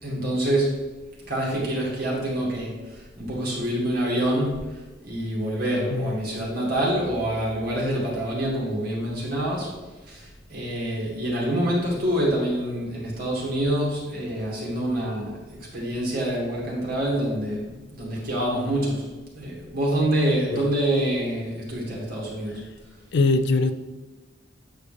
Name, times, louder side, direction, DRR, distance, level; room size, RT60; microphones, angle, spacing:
voice 1, 0.0-0.8 1.3-9.7 10.1-19.0 19.3-22.6, right 1 dB, 50° right, -4 dB, 2.1 m, -26 dB
voice 2, 23.1-23.7, left 3 dB, 60° left, 10 dB, 0.4 m, -22 dB
8.3 x 4.9 x 3.4 m, 1.2 s
head